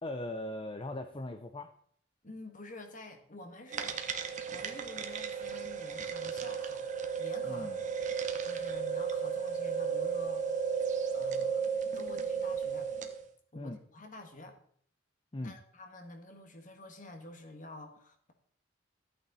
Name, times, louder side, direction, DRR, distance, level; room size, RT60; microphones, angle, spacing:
voice 1, 0.0-1.7 7.4-7.8 13.5-13.8 15.3-15.5, left 1 dB, 25° left, 7 dB, 0.6 m, -39 dB
voice 2, 2.2-6.8 7.2-7.7 8.4-10.4 10.9-11.6 11.9-12.9 13.5-14.6 15.4-18.3, left 2 dB, 45° left, 6 dB, 1.7 m, -49 dB
sound 1, 3.7-13.2, right 6 dB, 40° right, 1.1 m, -34 dB
13.5 x 8.8 x 4.2 m, 0.62 s
head